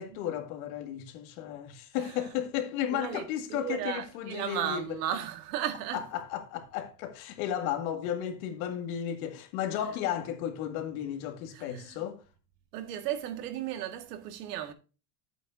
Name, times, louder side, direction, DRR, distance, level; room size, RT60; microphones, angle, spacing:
voice 1, 0.0-4.8 5.9-12.2, left 10 dB, 60° left, 2.2 m, -34 dB
voice 2, 2.0-2.4 2.9-6.1 11.5-12.0 12.7-14.7, right 10 dB, 70° right, 2.0 m, -35 dB
11.5 x 8.4 x 2.7 m
supercardioid pair, 175°, 48 cm